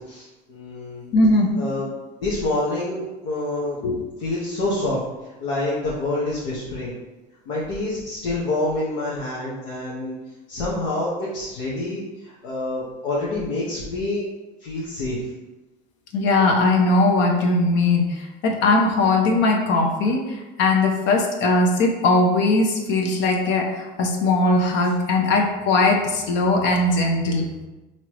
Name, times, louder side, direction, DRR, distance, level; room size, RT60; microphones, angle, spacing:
voice 1, 0.1-1.1 1.6-1.9 2.2-3.8 4.2-5.0 5.4-6.9 7.5-10.2 10.5-14.2 14.6-15.2, left 2 dB, 90° left, -6 dB, 1.0 m, -27 dB
voice 2, 1.1-1.5 3.8-4.0 16.1-18.1 18.4-20.2 20.6-27.5, left 2 dB, 60° left, 2 dB, 0.8 m, -19 dB
4.5 x 3.0 x 3.0 m, 1.1 s
supercardioid pair, 105°, 21 cm